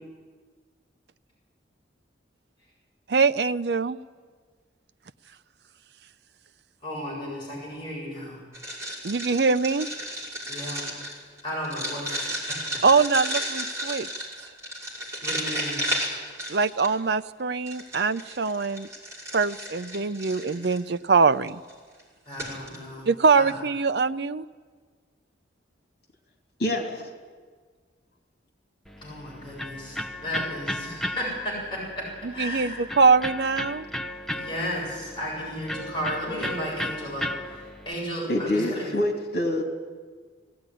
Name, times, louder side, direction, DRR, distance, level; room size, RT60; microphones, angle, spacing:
voice 1, 3.1-4.0 9.0-9.9 12.8-14.3 16.5-18.9 19.3-21.6 23.1-24.5 32.2-33.9, right 4 dB, 60° right, 13 dB, 0.6 m, -23 dB
voice 2, 6.8-8.4 10.5-10.8 11.4-12.6 15.2-15.8 22.3-23.1 23.4-23.5 29.0-32.8 34.3-37.3 37.9-38.9, equal, 25° left, -5 dB, 7.5 m, -34 dB
sound 1, 8.5-17.1 17.7-20.8 21.5-21.7 22.0-22.1 22.3-22.8, equal, 15° right, 5.7 m, -33 dB
voice 3, 26.6-27.0 38.3-39.6, left 1 dB, 55° left, 1 dB, 2.9 m, -26 dB
Electric guitar, 28.9-37.9, left 1 dB, ahead, 0.9 m, -35 dB
19.5 x 17.0 x 10.0 m, 1.6 s
head